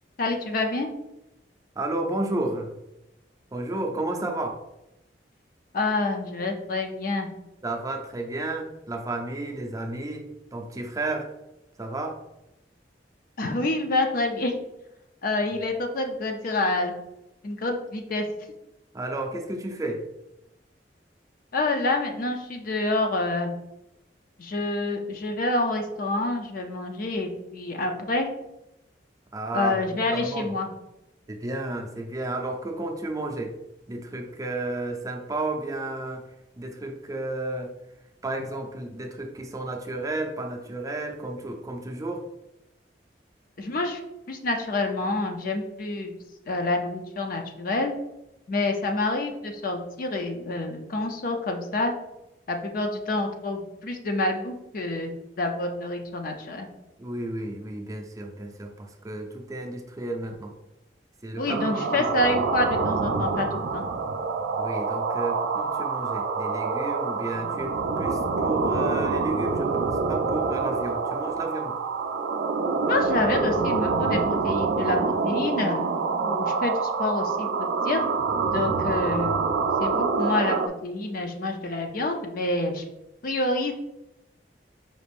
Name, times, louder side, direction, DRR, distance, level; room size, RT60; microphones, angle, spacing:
voice 1, 0.2-0.9 5.7-7.3 13.4-14.6 15.2-16.9 17.4-18.2 21.5-23.5 24.4-28.3 29.5-30.7 43.6-44.0 44.3-46.1 46.5-47.9 48.5-51.9 52.5-55.1 55.4-56.7 61.4-63.9 72.9-75.9 76.2-78.0 78.5-79.5 79.8-82.8 83.2-83.7, left 2 dB, 50° left, 4 dB, 0.5 m, -27 dB
voice 2, 1.8-2.7 3.5-4.6 7.6-11.3 11.8-12.2 18.9-20.0 29.3-29.9 30.1-30.5 31.3-33.6 33.9-36.3 36.6-37.7 38.2-42.2 57.0-60.5 61.2-61.6 61.9-62.1 64.6-71.8, right 2 dB, 20° right, 3 dB, 0.5 m, -32 dB
sound 1, 61.5-80.7, right 4 dB, 85° right, 0.4 m, -26 dB
5.1 x 2.5 x 3.4 m, 0.91 s
head